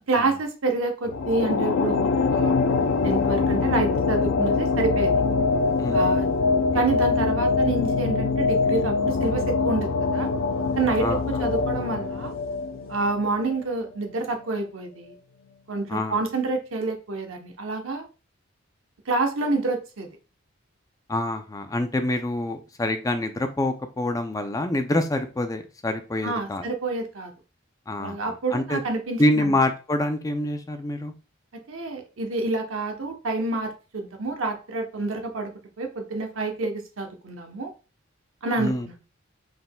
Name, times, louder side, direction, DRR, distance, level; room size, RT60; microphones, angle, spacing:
voice 1, 0.1-2.6 3.0-5.1 5.9-6.3 6.7-10.3 10.8-12.3 12.9-15.1 15.7-18.0 19.1-20.1 26.2-27.3 28.0-29.6 31.5-35.5 35.8-37.7 38.4-38.7, right 3 dB, 85° right, 4 dB, 0.9 m, -28 dB
sound 1, 1.1-13.6, left 4 dB, 80° left, 0.4 m, -23 dB
voice 2, 11.0-11.5 15.9-16.2 21.1-26.7 27.9-28.8 29.2-31.1 38.6-38.9, left 1 dB, 15° left, 7 dB, 0.4 m, -26 dB
4.1 x 3.5 x 2.2 m, 0.33 s
head